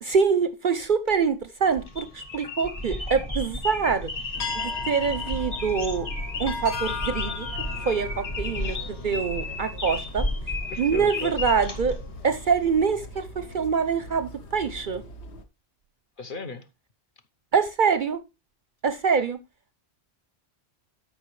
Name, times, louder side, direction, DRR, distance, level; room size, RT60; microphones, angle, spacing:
voice 1, 0.0-4.1 4.5-6.1 6.4-7.5 7.9-10.3 10.8-12.0 12.2-15.0 17.5-18.2 18.8-19.4, right 6 dB, 55° right, 0.6 m, -25 dB
sound 1, 1.6-12.5, left 2 dB, 30° left, 1.3 m, -33 dB
sound 2, 4.3-15.4, left 3 dB, 65° left, 1.2 m, -38 dB
voice 2, 10.7-11.4 16.2-16.7, left 3 dB, 50° left, 1.0 m, -36 dB
13.0 x 5.3 x 3.1 m
omnidirectional pair, 1.2 m